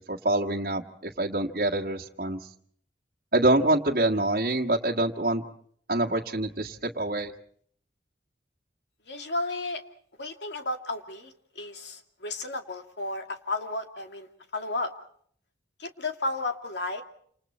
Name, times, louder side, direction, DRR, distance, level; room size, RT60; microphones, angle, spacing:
voice 1, 0.1-2.4 3.3-5.4 5.9-7.3, right 2 dB, 55° right, 0 dB, 1.8 m, -26 dB
voice 2, 9.1-9.8 10.2-14.3 14.5-14.9 15.8-17.0, left 2 dB, 75° left, 4 dB, 2.5 m, -33 dB
28.5 x 27.5 x 4.4 m, 0.62 s
head